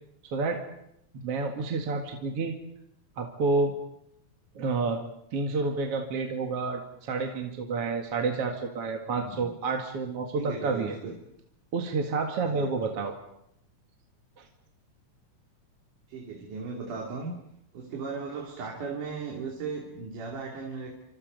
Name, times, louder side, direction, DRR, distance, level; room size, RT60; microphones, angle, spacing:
voice 1, 0.2-0.6 1.1-2.6 3.2-3.8 4.6-5.0 5.3-11.0 11.7-13.2 14.4-14.5, right 4 dB, 50° right, 3 dB, 2.9 m, -29 dB
voice 2, 9.1-9.6 10.4-11.2 12.4-12.7 16.1-17.4 17.7-20.9, right 5 dB, 80° right, 0 dB, 4.5 m, -37 dB
28.5 x 26.0 x 5.4 m, 0.76 s
omnidirectional pair, 3.6 m